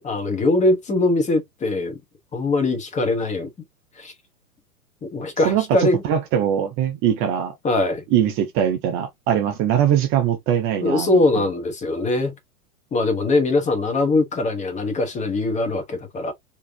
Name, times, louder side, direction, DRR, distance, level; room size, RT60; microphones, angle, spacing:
voice 1, 0.0-2.0 2.3-3.5 4.0-4.1 5.1-6.0 7.6-8.0 10.8-12.3 12.9-16.3, left 2 dB, 15° left, 1.1 m, -21 dB
voice 2, 5.4-7.5 8.1-11.5, right 9 dB, 30° right, 0.7 m, -21 dB
3.5 x 3.0 x 2.7 m
hypercardioid pair, 115°, 43 cm